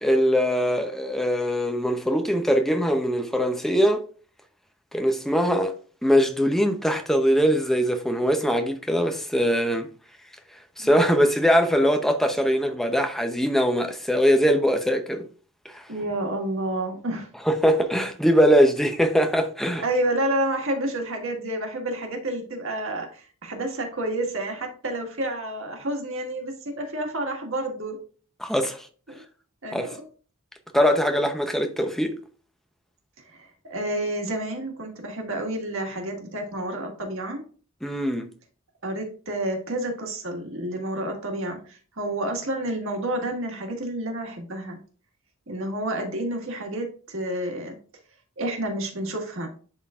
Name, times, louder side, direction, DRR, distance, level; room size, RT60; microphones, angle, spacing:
voice 1, 0.0-4.0 4.9-5.7 6.0-9.9 10.8-15.2 15.7-15.8 17.5-19.8 28.4-28.8 29.7-29.9 30.7-32.1 37.8-38.3, equal, ahead, 0.7 m, -22 dB
voice 2, 15.9-17.3 19.8-28.0 29.1-29.2 29.6-30.0 31.1-31.3 33.3-37.4 38.8-44.8 45.5-47.8 48.4-49.5, right 1 dB, 60° right, 1.7 m, -29 dB
11.0 x 3.7 x 2.4 m
head